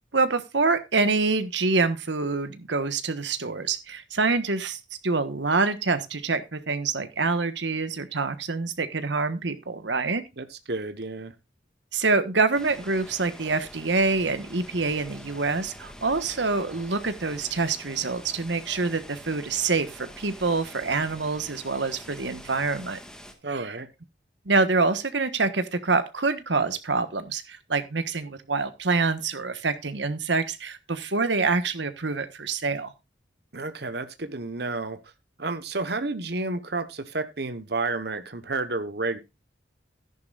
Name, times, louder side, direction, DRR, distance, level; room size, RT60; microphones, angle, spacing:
voice 1, 0.1-10.2 11.9-23.0 23.5-23.7 24.4-32.9, right 3 dB, 75° right, 1.3 m, -26 dB
voice 2, 10.4-11.3 23.4-23.9 33.5-35.0 35.4-39.2, right 3 dB, 60° right, 1.1 m, -31 dB
sound 1, 12.5-23.3, equal, 5° left, 1.5 m, -45 dB
13.5 x 10.5 x 2.4 m
head